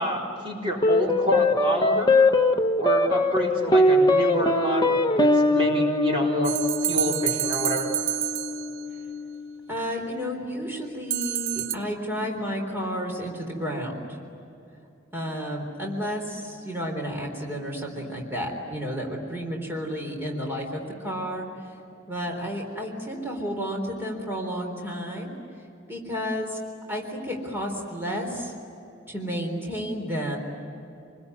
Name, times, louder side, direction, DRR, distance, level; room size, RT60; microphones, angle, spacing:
voice 1, 0.0-2.1 2.8-6.6 6.8-7.9, equal, 25° right, -2 dB, 3.7 m, -28 dB
sound 1, 0.8-9.4, left 2 dB, 20° left, 0.9 m, -22 dB
sound 2, 6.4-9.0 11.1-11.8, right 11 dB, 65° right, 0.8 m, -28 dB
voice 2, 9.7-14.2 15.1-21.5 22.1-25.4 25.9-26.6 26.9-28.5 29.1-30.4, equal, 10° right, 0 dB, 3.8 m, -31 dB
28.0 x 21.5 x 9.7 m, 2.7 s
head